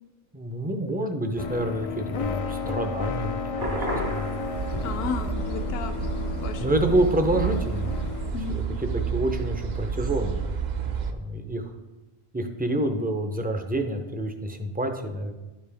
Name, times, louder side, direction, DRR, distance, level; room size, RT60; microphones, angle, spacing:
voice 1, 0.3-4.4 4.7-4.9 6.6-7.9 8.5-10.4 10.8-11.7 12.3-15.3, right 1 dB, 15° right, 5 dB, 0.4 m, -28 dB
sound 1, 1.4-8.3, left 6 dB, 55° left, 0.4 m, -33 dB
sound 2, 3.6-8.6, equal, 70° right, 1.9 m, -36 dB
sound 3, 4.5-11.1, right 6 dB, 55° right, 0.6 m, -30 dB
voice 2, 4.8-7.2 8.3-8.6, left 5 dB, 75° left, 7 dB, 0.8 m, -34 dB
10.5 x 5.3 x 3.4 m, 1.1 s
omnidirectional pair, 1.0 m